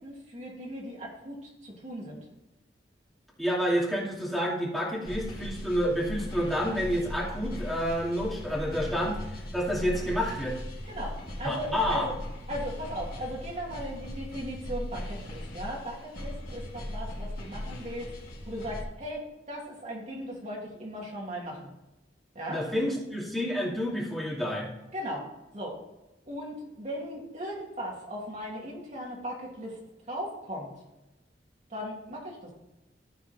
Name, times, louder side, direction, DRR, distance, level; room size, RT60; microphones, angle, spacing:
voice 1, 0.0-1.4 1.6-2.2 10.9-12.1 12.5-18.1 18.4-21.7 22.3-22.6 24.9-25.3 25.5-25.8 26.3-29.8 30.1-30.7 31.7-32.5, equal, 40° right, -3 dB, 2.9 m, -37 dB
voice 2, 3.4-9.2 9.5-10.6 11.4-12.1 22.5-24.7, equal, ahead, -6 dB, 2.6 m, -29 dB
sound 1, 5.0-18.8, left 1 dB, 55° left, 2.8 m, -38 dB
14.0 x 4.8 x 4.4 m, 1.0 s
head